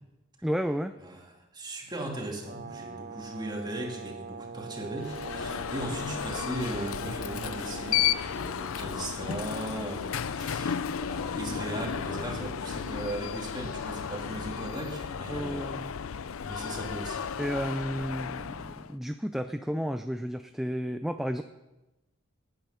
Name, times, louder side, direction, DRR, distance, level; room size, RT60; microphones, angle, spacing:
voice 1, 0.4-1.0 15.3-15.9 17.4-21.4, equal, ahead, 8 dB, 0.4 m, -32 dB
voice 2, 1.0-15.8 16.4-17.3, right 1 dB, 20° right, 1 dB, 2.4 m, -38 dB
Brass instrument, 2.4-8.3, right 5 dB, 40° right, 0.7 m, -43 dB
Alarm, 5.0-18.9, left 8 dB, 80° left, 0.5 m, -33 dB
18.0 x 9.1 x 5.8 m, 1.0 s
head